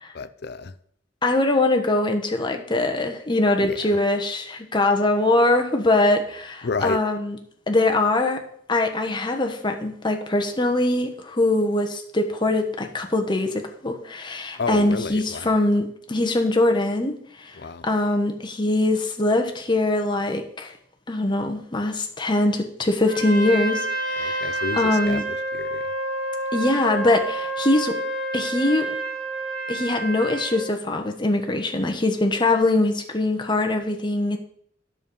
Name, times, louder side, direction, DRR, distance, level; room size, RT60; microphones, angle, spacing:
voice 1, 0.1-0.7 3.6-3.8 6.6-7.0 14.6-15.5 17.6-17.8 24.2-25.8, left 4 dB, 55° left, 14 dB, 0.5 m, -30 dB
voice 2, 1.2-7.4 7.7-8.4 8.7-17.5 17.8-20.7 21.1-25.2 26.5-28.0 28.3-28.9 29.7-34.4, left 2 dB, 25° left, 4 dB, 1.1 m, -22 dB
Trumpet, 23.0-30.7, right 2 dB, 80° right, 4.0 m, -29 dB
9.5 x 6.7 x 5.4 m, 0.65 s
head